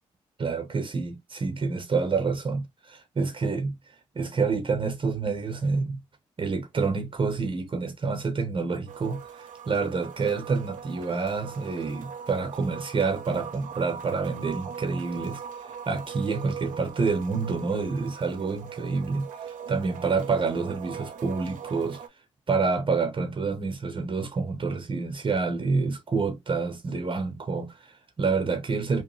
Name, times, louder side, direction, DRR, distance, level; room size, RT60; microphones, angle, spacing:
voice 1, 0.4-3.7 4.1-6.0 6.4-22.0 22.5-29.0, right 4 dB, 40° right, 0.8 m, -28 dB
sound 1, 8.9-22.1, right 7 dB, 75° right, 0.5 m, -41 dB
3.0 x 2.1 x 3.0 m
supercardioid pair, 50°, 14 cm